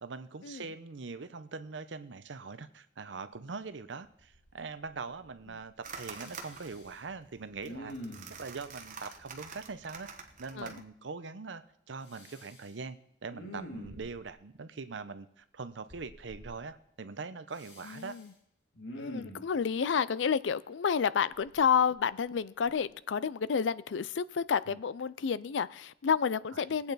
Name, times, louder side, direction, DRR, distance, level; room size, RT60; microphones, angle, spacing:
voice 1, 0.0-7.9 8.3-10.1 10.4-18.2 24.7-24.8 26.5-26.6, right 4 dB, 85° right, 12 dB, 0.7 m, -42 dB
Respiratory sounds, 4.0-4.6 4.8-5.6 5.9-7.0 7.6-8.5 12.1-12.7 13.2-14.3 15.9-16.5 17.5-18.2 18.7-19.5 21.3-22.3 22.7-22.9, equal, 65° left, 2.5 m, -47 dB
sound 1, 5.8-10.8, right 5 dB, 45° right, 1.1 m, -47 dB
voice 2, 17.9-18.3 19.0-26.9, left 6 dB, 85° left, 18 dB, 0.4 m, -30 dB
20.0 x 8.6 x 4.0 m, 0.77 s
head